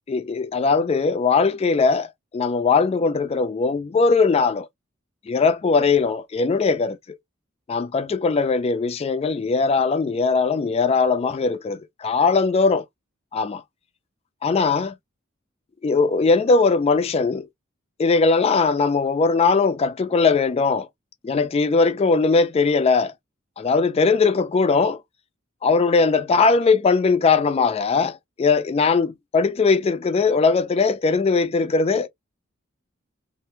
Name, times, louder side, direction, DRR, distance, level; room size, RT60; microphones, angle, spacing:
voice 1, 0.1-2.1 2.3-4.7 5.3-7.2 7.7-12.8 13.3-13.6 14.4-14.9 15.8-17.5 18.0-20.9 21.2-23.1 23.6-25.0 25.6-32.1, left 4 dB, 30° left, 0.3 m, -20 dB
2.8 x 2.1 x 3.3 m
head